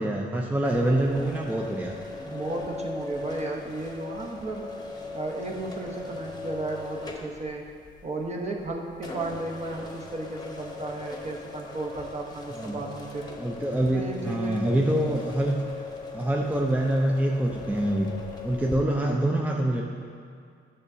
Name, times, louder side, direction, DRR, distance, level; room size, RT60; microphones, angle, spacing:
voice 1, 0.0-1.9 12.5-12.8 13.4-15.6 16.1-18.1 18.4-19.8, right 1 dB, 10° right, -1 dB, 0.5 m, -25 dB
sound 1, 0.6-18.8, left 3 dB, 20° left, 0.9 m, -39 dB
voice 2, 2.3-4.7 5.1-7.7 8.0-13.3 13.9-14.7, right 2 dB, 35° right, 0 dB, 1.1 m, -34 dB
9.8 x 6.7 x 2.8 m, 2.2 s
cardioid pair, 90°, 20 cm